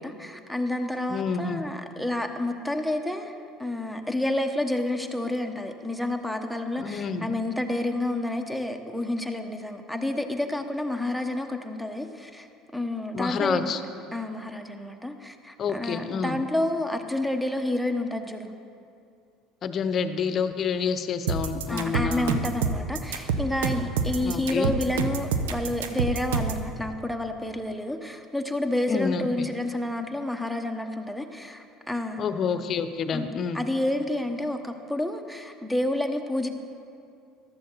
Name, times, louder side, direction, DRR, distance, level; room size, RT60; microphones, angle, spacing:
voice 1, 0.0-12.5 12.7-13.7 14.1-18.5 21.7-32.2 33.1-36.5, left 1 dB, ahead, 6 dB, 1.3 m, -29 dB
voice 2, 1.1-1.7 6.8-7.3 13.1-13.8 15.6-16.4 19.6-22.4 24.2-24.7 28.9-29.5 32.2-33.6, left 6 dB, 45° left, 11 dB, 0.8 m, -28 dB
sound 1, 21.3-26.6, right 5 dB, 80° right, 0.8 m, -27 dB
14.5 x 12.5 x 4.1 m, 2.5 s
hypercardioid pair, 70°, 0 cm